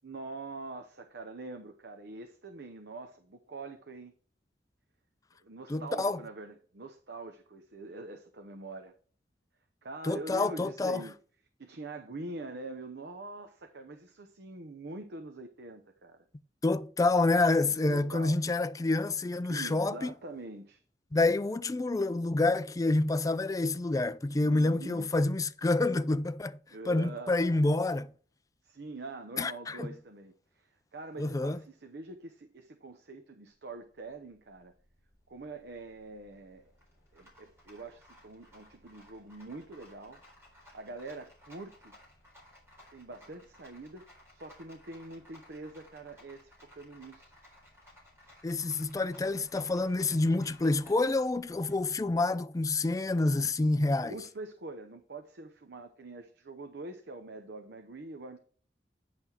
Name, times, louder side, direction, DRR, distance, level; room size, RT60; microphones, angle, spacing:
voice 1, 0.0-4.1 5.4-8.9 9.8-11.1 11.6-16.2 17.6-18.4 19.5-20.8 24.4-25.1 26.7-27.8 28.6-34.7 35.3-36.7 37.1-40.2 40.7-41.9 42.9-44.0 44.3-47.3 53.8-58.4, right 2 dB, 65° right, 0.8 m, -44 dB
voice 2, 5.7-6.2 10.0-11.0 16.6-20.1 21.1-26.6 26.9-28.1 29.4-29.9 31.2-31.6 48.4-54.2, left 2 dB, 20° left, 0.4 m, -28 dB
Rattle, 33.5-52.1, left 1 dB, 15° right, 4.1 m, -59 dB
9.6 x 5.7 x 4.4 m
head